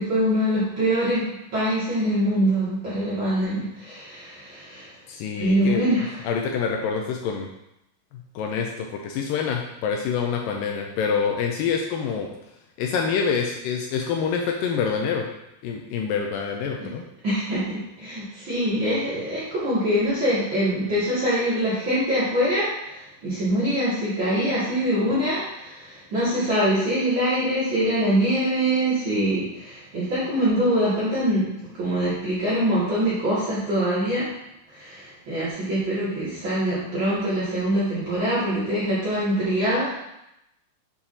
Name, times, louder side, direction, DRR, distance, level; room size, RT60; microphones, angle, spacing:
voice 1, 0.0-4.9 5.4-6.3 16.8-16.9 17.2-31.5 31.7-34.3 34.7-39.9, equal, 40° right, -11 dB, 2.3 m, -24 dB
voice 2, 5.1-5.8 6.2-7.5 8.1-12.3 12.8-15.3 15.6-17.0, left 6 dB, 80° left, 2 dB, 2.1 m, -26 dB
7.1 x 4.8 x 2.7 m, 0.86 s
omnidirectional pair, 4.2 m